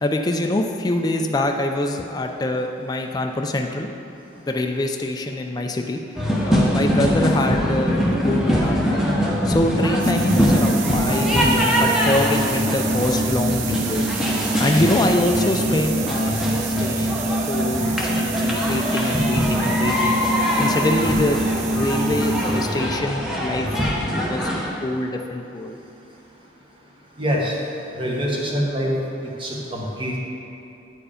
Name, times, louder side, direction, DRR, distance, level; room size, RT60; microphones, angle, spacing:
voice 1, 0.0-3.9 4.4-6.0 6.5-9.0 9.4-14.1 14.5-20.2 20.6-23.7 24.3-24.5 24.8-25.8, left 1 dB, 20° left, 3 dB, 0.3 m, -24 dB
sound 1, 6.1-24.7, equal, 5° right, 0.8 m, -23 dB
sound 2, 10.0-22.9, right 2 dB, 70° right, 0.6 m, -25 dB
voice 2, 27.2-27.5 28.0-28.9 29.4-30.2, equal, 25° right, -2 dB, 1.1 m, -24 dB
8.8 x 4.7 x 5.0 m, 2.9 s
head